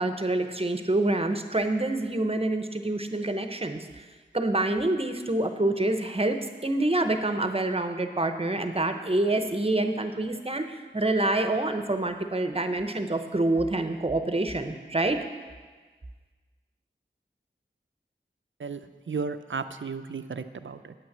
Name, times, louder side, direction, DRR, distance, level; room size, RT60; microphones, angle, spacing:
voice 1, 0.0-3.8 4.3-15.2, right 2 dB, 30° right, 7 dB, 0.8 m, -27 dB
voice 2, 18.6-20.9, right 5 dB, 75° right, 10 dB, 0.5 m, -34 dB
9.2 x 6.3 x 7.3 m, 1.4 s
wide cardioid pair, 55°, 20 cm